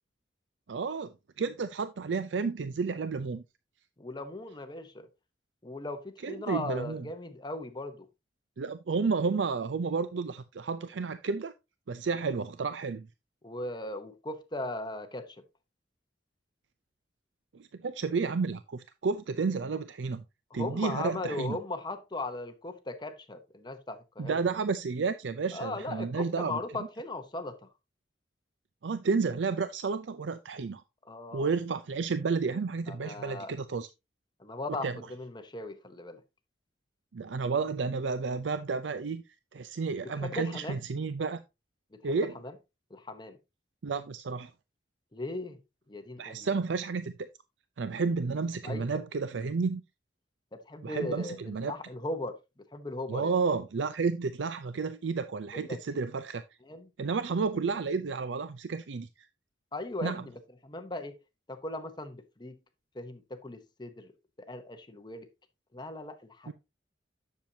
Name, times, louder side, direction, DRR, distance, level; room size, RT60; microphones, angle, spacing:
voice 1, 0.7-3.4 6.2-7.1 8.6-11.5 11.9-13.1 17.5-20.2 20.5-21.6 24.2-26.6 28.8-30.8 31.3-33.9 34.8-35.0 37.1-39.2 39.5-41.4 42.0-42.3 43.8-44.5 46.2-47.1 47.8-49.8 50.8-51.7 53.1-56.4 57.0-59.1 60.0-60.2 66.5-66.6, right 4 dB, 85° right, 0.5 m, -31 dB
voice 2, 4.0-5.1 5.6-8.1 13.4-15.4 20.5-24.4 25.5-27.6 31.0-31.5 32.9-33.5 34.4-36.2 40.2-40.8 41.9-42.2 42.4-42.5 42.9-43.4 45.1-45.6 45.9-46.5 48.6-49.0 50.5-52.4 52.7-53.3 55.5-56.0 56.6-56.9 59.7-60.3 60.6-61.1 61.5-62.6 62.9-64.1 64.5-65.3 65.7-66.5, left 2 dB, 25° left, 0.8 m, -38 dB
10.5 x 6.7 x 2.8 m
head